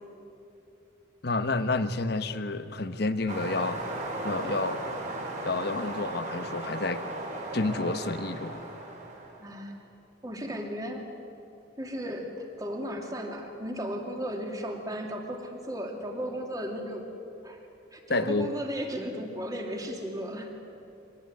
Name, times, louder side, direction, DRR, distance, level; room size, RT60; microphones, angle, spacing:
voice 1, 1.2-3.8 4.2-4.8 5.4-7.0 7.5-8.6 18.1-18.5, left 3 dB, 50° left, 11 dB, 1.0 m, -29 dB
sound 1, 3.3-9.4, right 2 dB, 35° right, 4.4 m, -36 dB
voice 2, 9.4-9.8 10.2-11.0 11.8-17.0 17.4-17.6 17.9-20.5, equal, 20° right, 2 dB, 2.5 m, -35 dB
24.5 x 18.5 x 9.6 m, 2.9 s
head